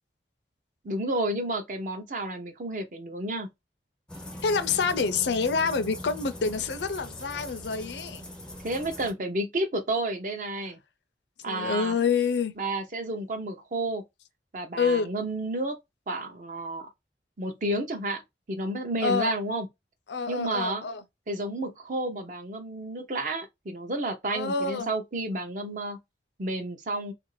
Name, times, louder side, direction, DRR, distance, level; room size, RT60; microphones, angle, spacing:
voice 1, 0.8-3.5 8.6-10.8 11.4-12.0 12.6-14.0 14.5-15.8 16.1-16.9 17.4-18.2 18.5-19.7 20.3-20.9 21.3-26.0 26.4-27.1, right 1 dB, 45° right, 0.6 m, -31 dB
sound 1, 4.1-9.1, left 1 dB, 5° left, 0.5 m, -41 dB
voice 2, 4.4-8.3 11.5-12.5 14.8-15.1 19.0-19.3 20.1-21.0 24.3-24.9, left 5 dB, 75° left, 0.5 m, -27 dB
2.8 x 2.5 x 3.1 m
head